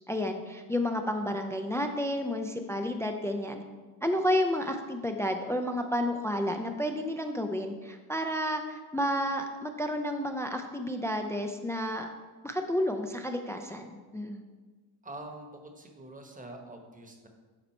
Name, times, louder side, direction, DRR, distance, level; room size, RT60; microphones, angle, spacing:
voice 1, 0.1-3.6 4.0-12.1 12.4-14.4, left 1 dB, 5° left, 5 dB, 0.4 m, -31 dB
voice 2, 15.0-17.3, right 2 dB, 20° right, 3 dB, 1.1 m, -45 dB
8.8 x 4.1 x 4.3 m, 1.4 s
cardioid pair, 105°, 43 cm